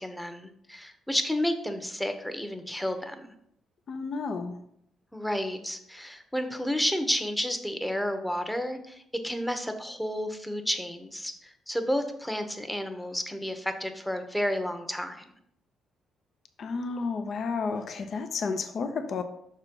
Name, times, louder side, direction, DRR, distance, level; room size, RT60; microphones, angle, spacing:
voice 1, 0.0-3.2 5.1-15.2, equal, 5° left, 7 dB, 0.9 m, -31 dB
voice 2, 3.9-4.6 16.6-19.2, left 4 dB, 55° left, 8 dB, 0.7 m, -31 dB
6.0 x 4.4 x 5.3 m, 0.73 s
cardioid pair, 90°, 0 cm